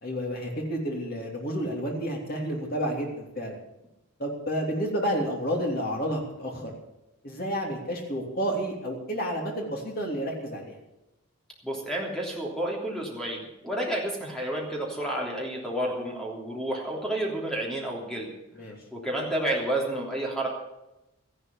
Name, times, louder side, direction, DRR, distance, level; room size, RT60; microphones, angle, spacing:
voice 1, 0.0-3.6 4.2-6.7 7.2-10.7 18.6-18.8, equal, 45° left, 0 dB, 3.2 m, -30 dB
voice 2, 11.6-18.3 18.9-20.5, right 1 dB, 5° left, -2 dB, 3.2 m, -30 dB
14.0 x 11.5 x 7.2 m, 0.93 s
head